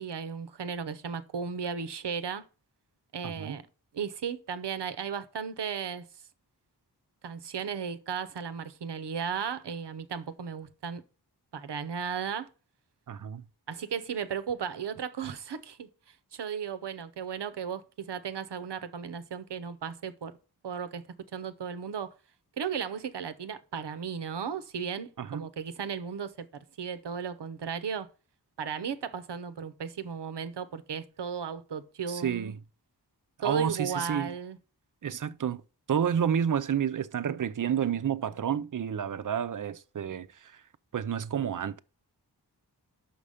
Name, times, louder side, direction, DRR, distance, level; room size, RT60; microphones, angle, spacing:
voice 1, 0.0-2.4 3.1-3.7 3.9-6.1 7.2-11.0 11.5-12.5 13.7-20.3 20.6-21.0 21.3-22.1 22.6-28.1 28.6-32.5 33.4-34.6, right 7 dB, 90° right, 0.7 m, -35 dB
voice 2, 3.2-3.6 13.1-13.4 25.2-25.5 32.1-32.5 33.4-34.4 35.0-35.6 35.9-40.5 40.9-41.8, right 8 dB, 50° right, 0.5 m, -30 dB
5.9 x 5.5 x 4.9 m
wide cardioid pair, 60°, 40 cm